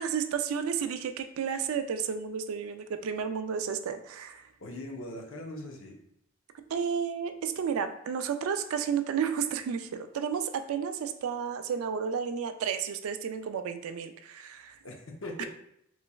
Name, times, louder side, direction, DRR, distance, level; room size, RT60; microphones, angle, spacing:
voice 1, 0.0-4.5 6.7-14.8 15.4-15.5, right 7 dB, 75° right, 8 dB, 0.3 m, -32 dB
voice 2, 4.6-6.0 14.8-15.5, left 1 dB, 65° left, 1 dB, 0.7 m, -40 dB
4.0 x 3.1 x 2.3 m, 0.74 s
head